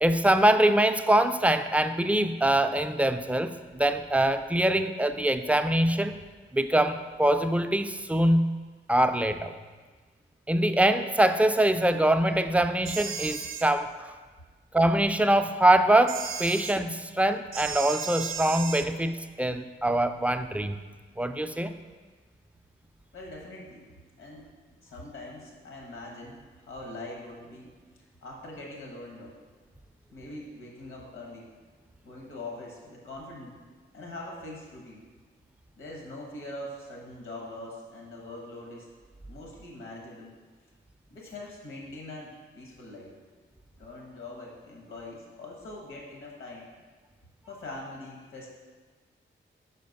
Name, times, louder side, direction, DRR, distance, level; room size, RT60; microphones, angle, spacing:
voice 1, 0.0-6.1 6.5-8.5 8.9-9.5 10.5-14.1 14.7-20.8 21.2-21.7, right 1 dB, 5° right, 9 dB, 0.3 m, -24 dB
sound 1, 12.8-13.7 16.1-16.8 17.5-18.9, right 6 dB, 80° right, 0.5 m, -35 dB
voice 2, 23.1-23.9 24.2-24.5 24.8-27.7 28.2-29.3 30.1-31.5 32.0-33.5 33.9-35.1 35.7-38.9 39.3-40.3 41.1-43.1 43.8-46.7 47.5-48.5, left 2 dB, 90° left, -2 dB, 1.3 m, -42 dB
5.1 x 4.3 x 5.3 m, 1.4 s
cardioid pair, 60°, 21 cm